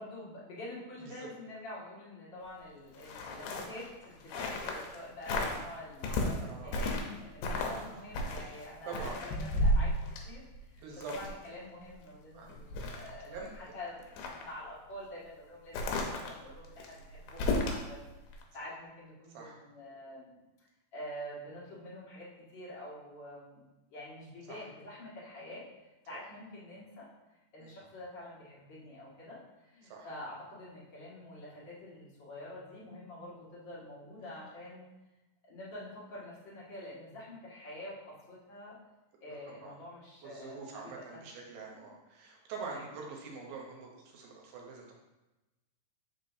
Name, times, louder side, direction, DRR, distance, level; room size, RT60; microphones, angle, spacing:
voice 1, 0.0-10.0 10.2-10.4 10.7-10.8 11.2-14.1 14.4-18.1 18.5-20.4 20.9-23.6 23.9-25.6 26.1-27.1 27.5-34.9 35.4-38.0 38.3-38.8 39.2-41.2 41.8-41.9 42.7-42.9, left 1 dB, 40° left, -8 dB, 2.2 m, -46 dB
sound 1, 2.9-5.0 5.2-5.6 6.0-7.2 7.4-7.9 8.1-11.5 11.9-12.0 12.4-13.6 14.0-14.5 15.7-17.9 18.3-18.4, left 1 dB, 90° left, 2.7 m, -33 dB
voice 2, 6.4-6.7 7.6-7.7 8.4-9.2 10.8-11.1 12.3-12.5 12.8-13.7 18.6-18.7 19.3-19.6 24.5-24.7 26.1-26.3 27.6-27.8 29.8-30.1 39.6-39.7 40.2-44.9, right 4 dB, 80° right, -1 dB, 2.8 m, -45 dB
7.2 x 5.9 x 2.7 m, 1.0 s
omnidirectional pair, 4.2 m